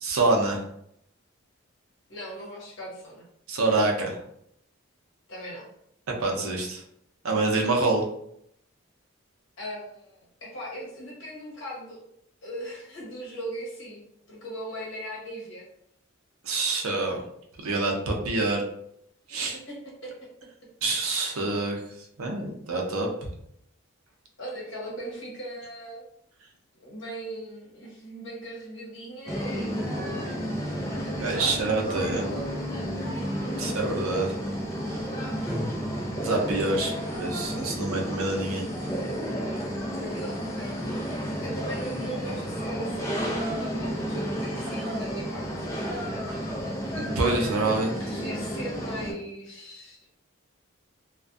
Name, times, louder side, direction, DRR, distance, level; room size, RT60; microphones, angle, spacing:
voice 1, 0.0-0.6 3.5-4.2 6.2-6.8 7.2-8.0 16.4-17.2 17.6-18.6 19.3-19.6 20.8-21.8 22.2-23.1 31.2-32.2 33.6-34.3 36.2-38.6 46.9-48.0, right 3 dB, 85° right, 1 dB, 0.5 m, -26 dB
voice 2, 2.1-3.2 5.3-5.7 9.6-12.0 12.4-14.0 14.3-15.6 19.5-20.2 24.4-26.1 26.8-29.9 31.0-32.5 36.8-36.9 40.0-41.0 41.4-45.7 47.6-50.0, right 1 dB, 60° left, -4 dB, 0.9 m, -39 dB
sound 1, 29.3-49.1, equal, 15° left, 0.4 m, -32 dB
sound 2, 29.9-34.4 34.8-36.3 37.0-37.9 38.3-39.3 39.9-42.7 43.3-44.3 44.7-48.1, equal, 40° right, 0.7 m, -45 dB
2.5 x 2.2 x 2.3 m, 0.73 s
head